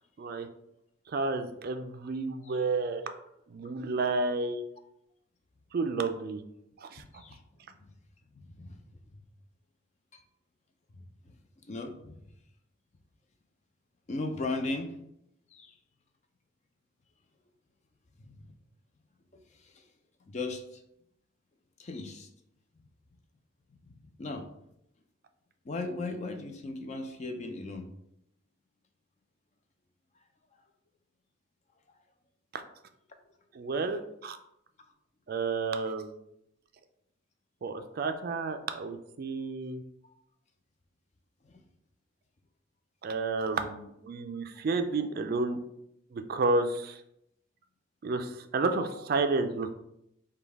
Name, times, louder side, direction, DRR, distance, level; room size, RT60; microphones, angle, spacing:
voice 1, 1.1-3.0 3.5-4.6 5.7-6.4 6.8-7.0 32.5-32.6 33.6-34.4 35.3-36.1 37.6-39.8 43.0-45.6 46.1-47.0 48.0-49.7, right 3 dB, 50° right, 7 dB, 0.3 m, -31 dB
voice 2, 8.3-8.8 9.1-9.3 10.1-10.2 10.9-11.4 11.7-12.2 14.1-15.0 15.5-15.8 18.2-18.5 19.5-19.9 20.3-20.8 21.8-22.3 23.7-24.5 25.6-27.9 38.0-38.1 40.0-40.1 41.4-41.6 44.5-44.6 48.8-49.1, left 2 dB, 35° left, 5 dB, 0.4 m, -38 dB
5.1 x 2.3 x 3.4 m, 0.78 s
head